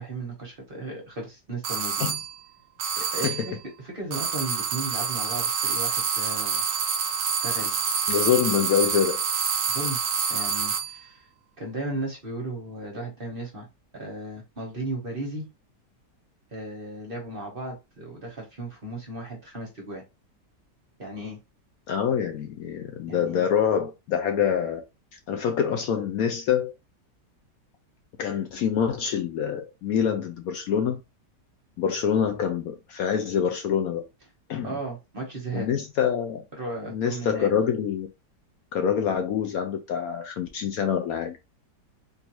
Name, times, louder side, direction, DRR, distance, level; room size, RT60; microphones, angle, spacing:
voice 1, 0.0-2.1 2.9-6.6 7.4-7.8 9.7-10.0 10.3-11.2 11.6-13.7 13.9-15.5 16.5-20.0 21.0-21.4 23.1-23.5 34.6-35.7 36.6-37.5, right 2 dB, 40° right, 1.0 m, -35 dB
sound 1, 1.6-2.3 2.8-3.5 4.1-11.0, right 6 dB, 60° right, 1.0 m, -27 dB
voice 2, 8.1-9.2 21.9-24.8 25.3-26.7 28.2-31.0 31.8-34.0 34.5-34.8 35.5-36.4 36.9-38.1 38.7-41.4, left 8 dB, 70° left, 0.9 m, -25 dB
3.7 x 2.6 x 2.9 m
omnidirectional pair, 1.8 m